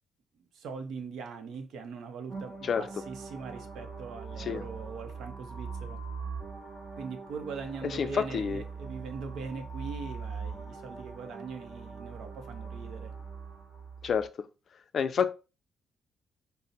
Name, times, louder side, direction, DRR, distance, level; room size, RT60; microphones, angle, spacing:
voice 1, 0.5-6.0 7.0-13.1, right 5 dB, 80° right, 0.7 m, -41 dB
sound 1, 2.3-14.3, right 5 dB, 40° right, 2.1 m, -42 dB
voice 2, 7.9-8.6 14.0-14.3 14.9-15.3, left 7 dB, 55° left, 0.3 m, -28 dB
5.6 x 2.0 x 2.6 m
cardioid pair, 90°, 0 cm